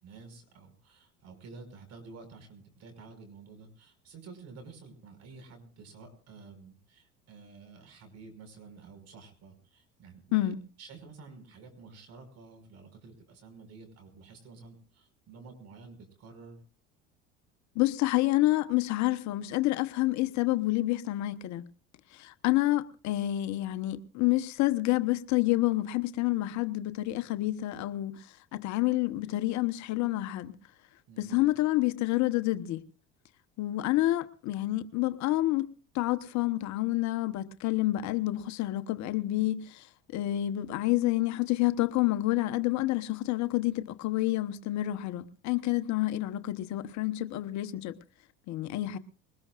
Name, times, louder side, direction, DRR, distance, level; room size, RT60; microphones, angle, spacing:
voice 1, 0.0-10.5 10.8-16.6 31.1-31.5 48.7-48.9, right 4 dB, 50° right, 5.7 m, -50 dB
voice 2, 10.3-10.6 17.7-21.7 22.1-30.5 31.2-32.8 33.6-35.7 35.9-39.9 40.1-48.0 48.5-49.0, left 17 dB, 60° left, 1.0 m, -28 dB
21.5 x 20.0 x 2.5 m
hypercardioid pair, 80°, 32 cm